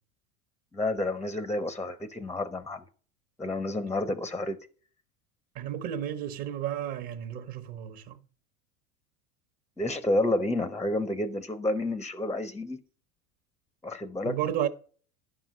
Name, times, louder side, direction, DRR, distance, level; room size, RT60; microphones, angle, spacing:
voice 1, 0.7-2.9 3.4-4.6 9.8-12.8 13.8-14.4, left 1 dB, 5° left, 0.5 m, -30 dB
voice 2, 5.5-8.2 14.2-14.7, right 10 dB, 50° right, 1.1 m, -32 dB
10.5 x 5.8 x 6.2 m
hypercardioid pair, 110°, 46 cm